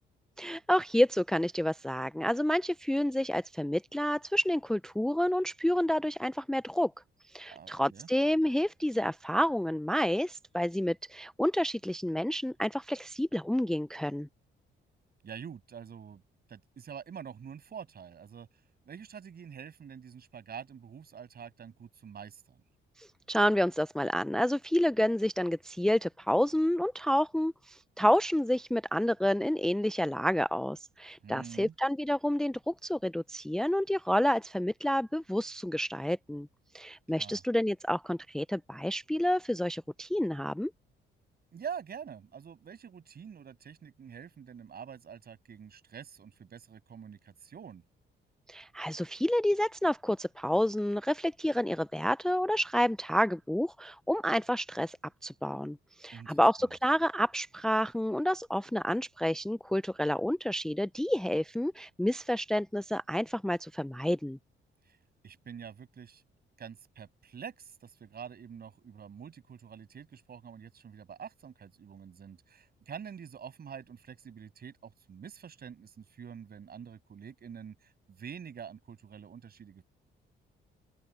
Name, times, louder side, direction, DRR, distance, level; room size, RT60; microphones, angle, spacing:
voice 1, 0.4-6.9 7.3-14.3 23.0-36.5 36.7-40.7 48.5-55.0 55.2-64.4, equal, 5° left, 0.5 m, -29 dB
voice 2, 7.5-8.1 15.2-16.2 16.5-18.5 18.9-22.6 31.2-31.7 37.2-37.4 41.5-47.8 56.1-56.4 64.9-65.0 65.2-66.2 66.6-79.8, right 7 dB, 50° right, 6.9 m, -46 dB
cardioid pair, 90°, 20 cm